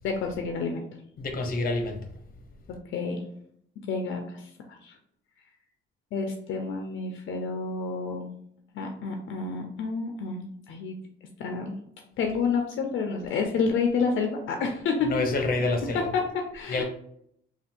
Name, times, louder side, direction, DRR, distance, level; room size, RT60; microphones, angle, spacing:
voice 1, 0.0-0.8 2.9-3.2 3.9-4.5 4.8-4.9 6.1-8.3 8.7-11.0 11.4-11.8 12.2-15.1 15.9-16.8, left 4 dB, 75° left, 3 dB, 0.6 m, -29 dB
voice 2, 1.2-2.0 15.1-16.1 16.7-16.8, left 2 dB, 45° left, 4 dB, 0.9 m, -27 dB
3.3 x 2.4 x 4.3 m, 0.69 s
cardioid pair, 90°, 20 cm